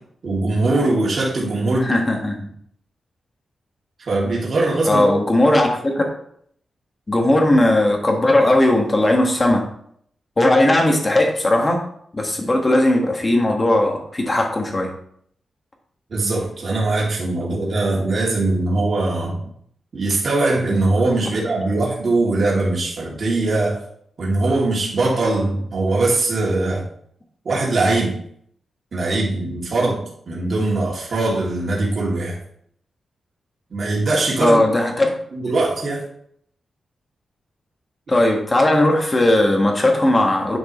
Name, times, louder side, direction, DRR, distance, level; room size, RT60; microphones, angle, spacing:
voice 1, 0.2-2.0 4.1-5.0 16.1-19.4 19.9-23.8 24.2-26.8 27.4-28.2 28.9-32.4 33.7-34.6 35.3-36.0, right 2 dB, 50° right, -4 dB, 2.7 m, -21 dB
voice 2, 1.8-2.4 4.8-6.0 7.1-9.6 10.4-11.8 12.1-14.9 34.4-35.2 38.1-40.6, left 1 dB, 25° left, 2 dB, 1.6 m, -17 dB
10.0 x 6.5 x 3.2 m, 0.65 s
wide cardioid pair, 145°, 0 cm